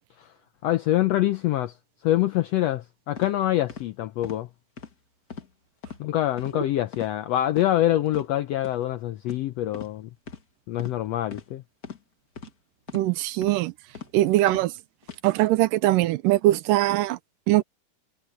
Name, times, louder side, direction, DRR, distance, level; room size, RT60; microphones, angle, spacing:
voice 1, 0.6-1.7 2.0-4.5 6.0-10.1 10.7-11.6, left 13 dB, 85° left, 1.4 m, -25 dB
sound 1, 3.2-3.3 3.7-3.9 4.2-4.4 4.8-4.9 5.3-5.5 5.8-6.0 6.4-6.6 6.9-7.1 7.5-7.7 8.1-8.3 8.6-8.8 9.3-9.4 9.7-9.9 10.3-10.4 10.8-11.0 11.3-11.5 11.8-12.0 12.4-12.5 12.9-13.1 13.4-13.6 13.9-14.1 14.5-14.7 15.0-15.2, left 6 dB, 45° left, 1.3 m, -40 dB
voice 2, 12.9-13.7 14.1-14.7 15.2-17.2 17.5-17.6, right 16 dB, 90° right, 2.4 m, -21 dB
omnidirectional pair, 3.7 m